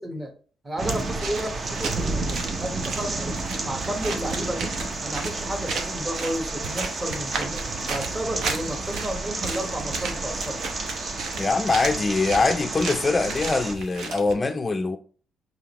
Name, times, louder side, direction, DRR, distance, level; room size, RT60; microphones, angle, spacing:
voice 1, 0.6-4.7 5.0-10.6, equal, 20° right, 1.1 m, -32 dB
sound 1, 0.8-13.7, right 3 dB, 45° right, 0.8 m, -31 dB
sound 2, 0.9-14.3, right 4 dB, 75° right, 0.8 m, -35 dB
voice 2, 11.4-15.0, left 3 dB, 25° left, 0.4 m, -23 dB
4.8 x 3.1 x 2.9 m
cardioid pair, 90°, 0 cm